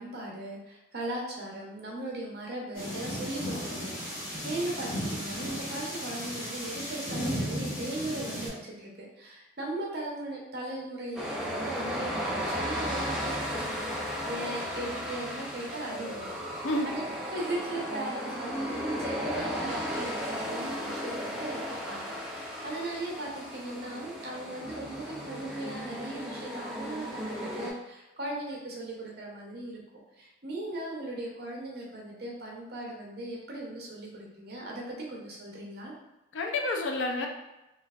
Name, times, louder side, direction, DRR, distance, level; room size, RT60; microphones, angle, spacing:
voice 1, 0.0-13.8 14.2-17.0 17.3-29.8 30.2-35.9, right 1 dB, 55° right, -2 dB, 0.7 m, -38 dB
sound 1, 2.7-8.5, equal, 45° left, 1.1 m, -35 dB
sound 2, 11.2-27.7, equal, 5° right, 0.4 m, -35 dB
voice 2, 12.8-13.2 16.6-16.9 36.3-37.3, left 2 dB, 80° left, 2 dB, 0.4 m, -30 dB
3.2 x 2.4 x 2.3 m, 0.96 s
head